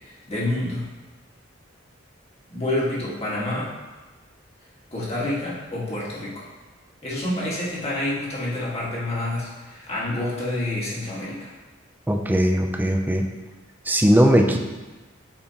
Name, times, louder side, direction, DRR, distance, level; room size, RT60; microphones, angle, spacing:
voice 1, 0.0-0.8 2.5-3.8 4.9-6.5 7.0-11.5, left 1 dB, 35° left, -7 dB, 1.8 m, -28 dB
voice 2, 12.1-13.3 13.9-14.6, equal, 10° right, 3 dB, 0.5 m, -19 dB
8.5 x 4.4 x 2.9 m, 1.2 s
head